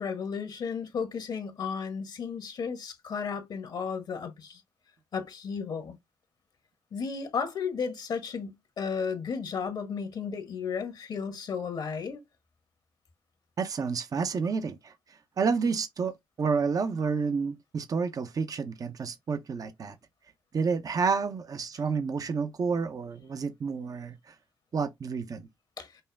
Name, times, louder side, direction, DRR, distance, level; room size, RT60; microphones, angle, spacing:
voice 1, 0.0-4.6 5.1-6.0 6.9-12.2 25.8-25.9, left 6 dB, 65° left, 1.2 m, -34 dB
voice 2, 13.6-20.0 20.5-24.3 24.7-25.4, right 5 dB, 50° right, 0.7 m, -30 dB
5.5 x 2.1 x 3.4 m
supercardioid pair, 50°, 8 cm